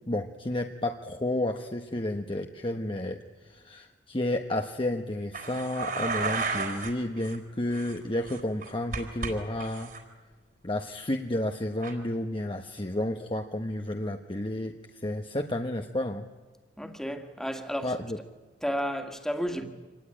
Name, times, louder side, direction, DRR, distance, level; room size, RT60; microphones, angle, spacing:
voice 1, 0.1-9.9 10.6-16.3 17.8-18.2, left 1 dB, 30° left, 1.1 m, -31 dB
Sweeping glass into metal dustpan, 5.3-6.9 7.2-7.4 7.7-9.3 9.6-10.0 11.8-11.9, right 4 dB, 50° right, 4.0 m, -33 dB
voice 2, 16.8-17.9 18.6-19.7, equal, 5° left, 2.0 m, -32 dB
26.0 x 19.0 x 9.9 m
head